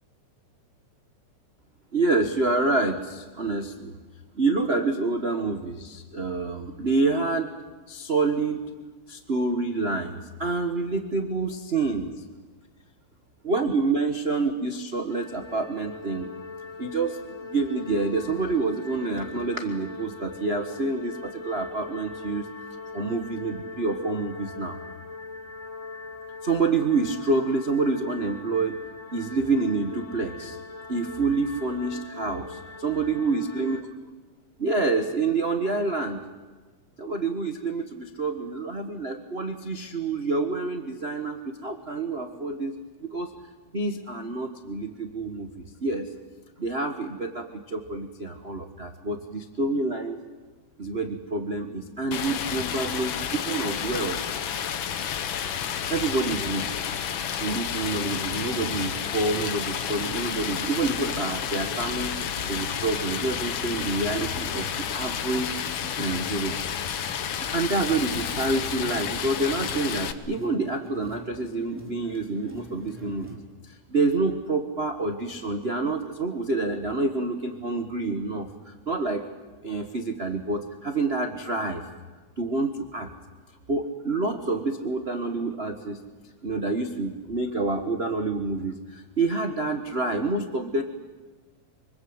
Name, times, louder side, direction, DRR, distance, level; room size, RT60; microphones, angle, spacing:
voice 1, 1.9-3.9 4.4-7.5 7.9-8.6 9.1-12.1 13.4-16.3 16.8-22.5 22.9-24.7 26.4-28.8 29.1-30.6 30.9-33.8 34.6-36.2 37.0-42.7 43.0-43.3 43.7-45.5 45.8-46.1 46.6-50.2 50.8-54.2 55.9-56.8 57.4-62.1 62.5-65.6 66.0-66.6 67.3-73.3 73.9-79.3 79.6-81.9 82.4-83.1 83.7-86.0 86.4-90.8, right 3 dB, 40° right, 5 dB, 0.8 m, -27 dB
sound 1, 15.1-33.8, left 4 dB, 40° left, 1.0 m, -41 dB
Stream, 52.1-70.1, left 8 dB, 60° left, 1.3 m, -31 dB
sound 2, 55.1-73.4, left 1 dB, 5° right, 3.6 m, -48 dB
25.0 x 24.5 x 8.0 m, 1.3 s
omnidirectional pair, 3.6 m